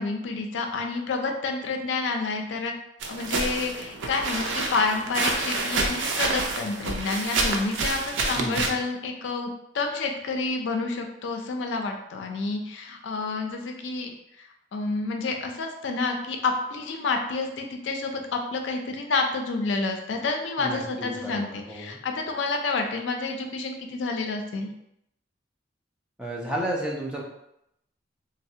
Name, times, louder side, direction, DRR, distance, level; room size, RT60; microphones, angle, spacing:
voice 1, 0.0-2.7 3.1-9.5 9.7-14.1 14.7-24.7, left 3 dB, 75° left, 4 dB, 0.4 m, -29 dB
sound 1, 3.0-8.7, right 3 dB, 85° right, 0.4 m, -28 dB
voice 2, 8.4-8.8 20.6-22.0 26.2-27.2, right 1 dB, 5° right, -3 dB, 0.4 m, -32 dB
3.2 x 2.0 x 2.7 m, 0.80 s
head